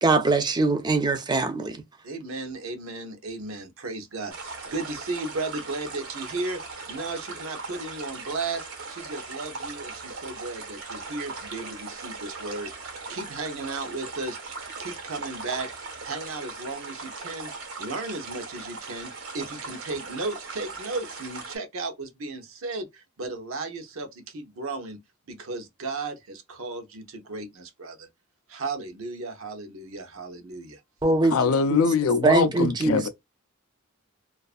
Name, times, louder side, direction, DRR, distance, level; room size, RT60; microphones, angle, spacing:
voice 1, 0.0-1.8 31.0-31.4 31.7-31.8 32.2-33.0, right 3 dB, 20° right, 0.4 m, -22 dB
voice 2, 2.0-6.6 6.9-17.5 17.8-25.0 25.3-28.1 28.5-30.8, right 3 dB, 70° right, 0.6 m, -35 dB
sound 1, 4.3-21.6, right 4 dB, 90° right, 1.0 m, -39 dB
voice 3, 31.3-33.1, left 5 dB, 75° left, 0.4 m, -22 dB
2.4 x 2.4 x 2.4 m
head